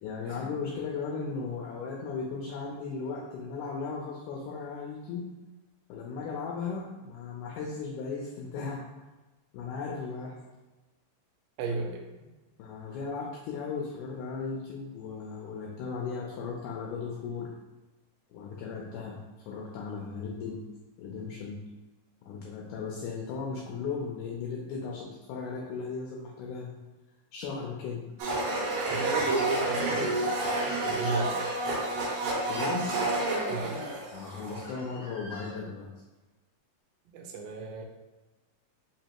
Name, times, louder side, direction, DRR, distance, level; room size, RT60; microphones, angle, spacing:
voice 1, 0.0-5.3 5.9-8.8 9.5-10.4 11.7-11.8 12.6-17.5 18.3-20.6 21.0-21.6 22.3-26.7 27.3-28.0 32.4-32.9 34.1-35.9, left 5 dB, 80° left, -2 dB, 1.9 m, -36 dB
voice 2, 11.6-12.0 28.9-30.4 30.8-31.5 33.5-33.8 37.1-37.8, right 4 dB, 90° right, 2 dB, 2.3 m, -33 dB
Domestic sounds home sounds, 28.2-34.8, right 2 dB, 75° right, 2.5 m, -30 dB
Crying sobbing / Screech, 29.6-31.8 33.7-34.0 34.6-35.6, equal, 50° left, 0.7 m, -44 dB
5.1 x 3.2 x 2.9 m, 1.1 s
omnidirectional pair, 4.0 m